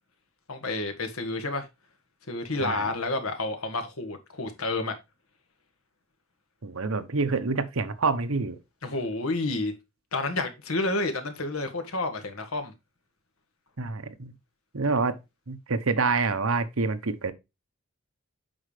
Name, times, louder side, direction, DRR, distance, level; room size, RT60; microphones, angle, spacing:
voice 1, 0.5-1.7 2.3-5.0 8.8-9.7 10.1-12.7, left 2 dB, 85° left, 1.8 m, -30 dB
voice 2, 6.6-8.6 13.8-14.3 14.7-15.2 15.5-17.3, right 4 dB, 80° right, 1.0 m, -27 dB
7.9 x 5.6 x 3.3 m
head